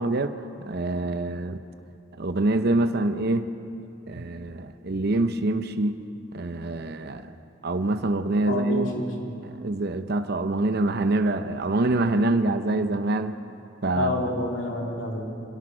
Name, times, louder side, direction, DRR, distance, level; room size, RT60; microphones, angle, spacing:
voice 1, 0.0-1.6 2.2-3.5 4.1-6.0 6.3-7.3 7.6-8.9 9.4-13.4 13.8-14.2, right 2 dB, 55° right, 9 dB, 0.8 m, -25 dB
voice 2, 8.5-9.3 13.9-15.3, left 1 dB, 85° left, 0 dB, 3.3 m, -29 dB
26.0 x 17.5 x 6.3 m, 2.7 s
head